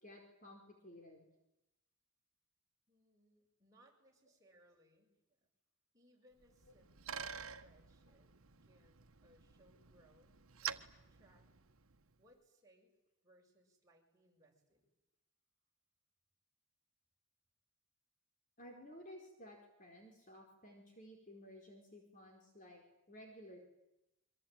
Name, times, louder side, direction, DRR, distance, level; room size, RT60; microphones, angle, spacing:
voice 1, 0.0-1.2 18.6-23.6, equal, 40° left, 2 dB, 4.7 m, -56 dB
voice 2, 2.9-5.2 5.9-8.3 8.6-11.5 12.2-13.0 13.2-14.9, right 1 dB, 15° right, -1 dB, 7.0 m, -69 dB
Bicycle, 6.4-12.1, right 8 dB, 80° right, 1.3 m, -49 dB
26.5 x 24.0 x 9.2 m, 0.89 s
head